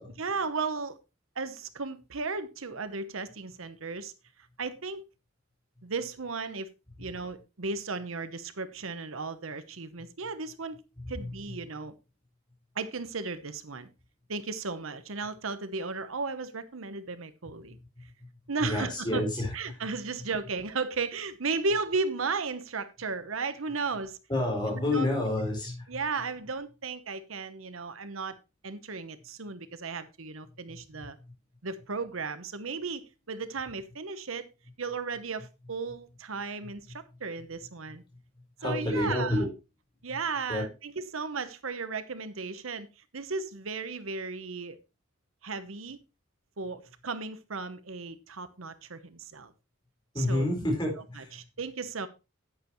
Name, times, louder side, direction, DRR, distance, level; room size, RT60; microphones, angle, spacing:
voice 1, 0.2-1.0 1.4-4.1 4.6-5.0 5.8-6.7 7.0-10.8 11.1-11.9 12.7-13.9 14.3-17.8 18.5-19.2 19.5-24.2 24.7-25.1 25.9-28.4 28.6-31.2 31.6-34.5 34.8-38.0 38.6-39.4 40.0-42.9 43.1-44.8 45.4-46.0 46.6-49.5 50.2-50.5 51.2-52.1, right 4 dB, 80° right, 1.0 m, -35 dB
voice 2, 11.0-11.6 17.7-18.3 18.6-19.8 24.3-25.9 30.7-31.1 38.6-39.5 40.5-40.7 50.1-51.4, left 1 dB, 20° left, 4.5 m, -30 dB
11.0 x 9.3 x 3.1 m
head